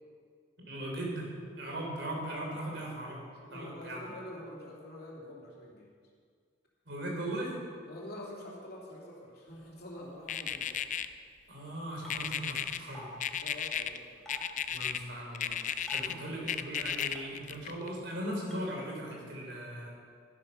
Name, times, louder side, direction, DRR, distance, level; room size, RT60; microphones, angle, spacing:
voice 1, 0.7-1.3 1.6-3.2 3.5-4.0 6.9-7.6 11.5-13.1 14.7-19.9, right 1 dB, 75° right, -1 dB, 3.4 m, -38 dB
voice 2, 3.5-5.9 7.9-10.8 13.4-14.3, left 1 dB, 60° left, -3 dB, 2.9 m, -46 dB
sound 1, 10.3-11.1 12.1-12.8 13.2-14.0 14.3-15.0 15.3-16.1 16.5-17.9, left 9 dB, 45° left, 0.4 m, -33 dB
sound 2, 12.0-12.1 12.9-13.1 14.3-14.4 15.9-16.1 17.1-17.2 18.5-18.6, left 1 dB, ahead, 3.0 m, -46 dB
12.0 x 11.0 x 5.5 m, 2.1 s
head